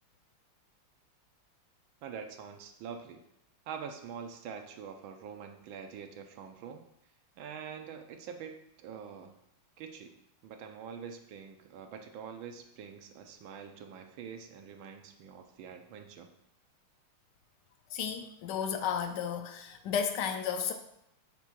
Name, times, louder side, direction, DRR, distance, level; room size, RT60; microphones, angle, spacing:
voice 1, 2.0-3.2 3.7-6.8 7.4-9.3 9.8-10.1 10.4-16.3, right 7 dB, 70° right, 6 dB, 1.3 m, -45 dB
voice 2, 17.9-20.7, left 7 dB, 85° left, 6 dB, 0.9 m, -33 dB
6.1 x 3.6 x 5.8 m, 0.78 s
omnidirectional pair, 2.4 m